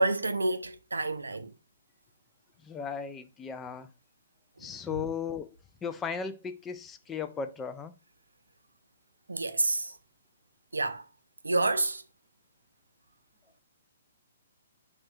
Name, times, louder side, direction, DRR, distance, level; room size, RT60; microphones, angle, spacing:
voice 1, 0.0-1.5 9.3-9.9 10.7-11.0 11.4-12.0, right 2 dB, 90° right, 0.4 m, -28 dB
voice 2, 2.6-3.9 4.6-5.5 5.8-7.9, left 6 dB, 15° left, 0.3 m, -36 dB
2.6 x 2.3 x 3.3 m
figure-of-eight pair, 130°, 0 cm